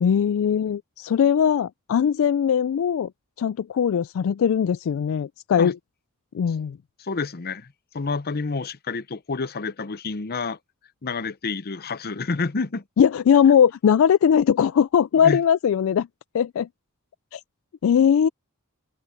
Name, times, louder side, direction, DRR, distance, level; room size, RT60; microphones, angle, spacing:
voice 1, 0.0-3.1 3.4-5.8 6.3-6.8 13.0-16.1 16.3-16.7 17.3-17.4 17.8-18.3, left 8 dB, 65° left, 0.3 m, -20 dB
voice 2, 7.0-10.6 11.0-12.8 15.2-15.4, left 4 dB, 45° left, 0.7 m, -29 dB
head